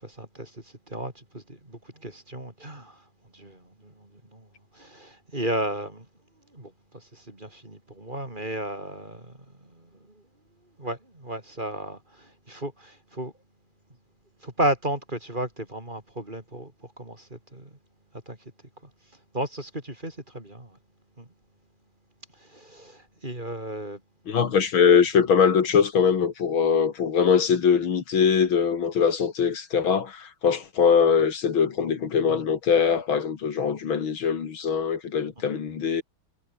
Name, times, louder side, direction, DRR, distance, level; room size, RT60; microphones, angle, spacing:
voice 1, 0.0-3.0 3.3-4.5 4.7-6.1 6.5-9.4 9.6-9.9 10.8-13.3 14.4-16.7 17.0-17.7 18.3-18.4 19.3-20.8 21.2-21.3 22.4-24.0 35.5-35.6, right 1 dB, 20° right, 4.7 m, -34 dB
voice 2, 24.3-36.0, left 6 dB, 70° left, 2.7 m, -22 dB
omnidirectional pair, 2.3 m